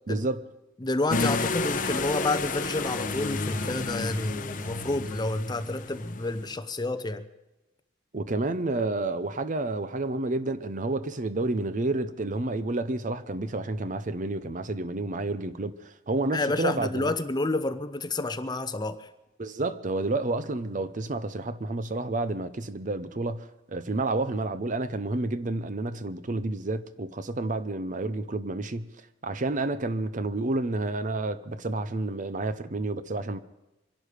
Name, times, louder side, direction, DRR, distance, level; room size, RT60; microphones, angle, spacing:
voice 1, 0.1-0.4 8.1-17.1 19.4-28.9 29.2-33.4, right 2 dB, 45° right, 0.7 m, -30 dB
voice 2, 0.8-7.2 16.3-19.1, left 2 dB, 25° left, 0.7 m, -29 dB
sound 1, 1.1-6.5, left 3 dB, 45° left, 0.9 m, -31 dB
24.5 x 11.5 x 5.0 m
head